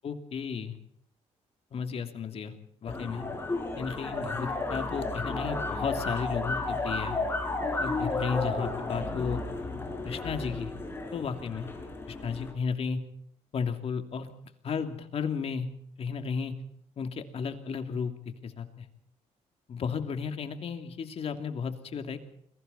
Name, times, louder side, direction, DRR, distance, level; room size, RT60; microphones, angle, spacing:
voice 1, 0.0-0.8 1.7-2.5 2.8-3.2 3.8-7.2 7.8-9.4 10.0-10.7 11.1-11.7 12.1-13.0 13.5-14.3 14.6-15.7 16.0-16.5 17.0-18.1 18.4-18.8 19.7-22.2, left 6 dB, 55° left, 7 dB, 2.8 m, -33 dB
sound 1, 2.9-12.5, left 2 dB, 20° left, 5.5 m, -33 dB
29.5 x 22.0 x 4.2 m, 0.68 s
cardioid pair, 110°, 12 cm